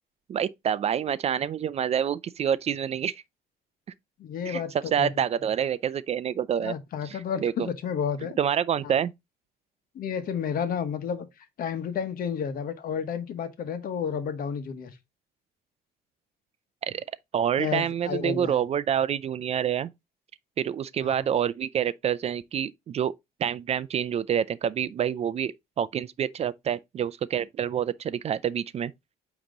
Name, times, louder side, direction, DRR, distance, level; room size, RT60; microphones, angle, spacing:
voice 1, 0.3-3.1 4.5-4.6 4.9-6.7 7.1-7.7 8.4-9.1 16.8-17.0 17.3-19.9 20.6-23.1 23.4-28.9, right 9 dB, 40° right, 0.4 m, -27 dB
voice 2, 4.2-4.7 5.0-5.1 6.6-8.4 8.8-8.9 9.9-14.9 17.6-18.6 21.0-21.2, left 7 dB, 60° left, 1.2 m, -31 dB
8.7 x 3.0 x 3.8 m
cardioid pair, 110°, 17 cm